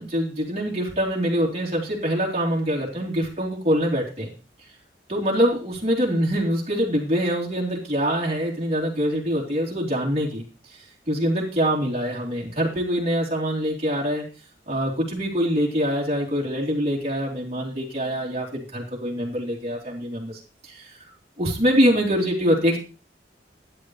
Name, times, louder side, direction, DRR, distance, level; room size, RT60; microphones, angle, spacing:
voice 1, 0.0-4.3 5.1-10.4 11.1-14.3 14.7-20.4 20.7-20.9 21.4-22.8, equal, 35° right, -4 dB, 3.6 m, -24 dB
12.5 x 10.5 x 3.3 m, 0.33 s
head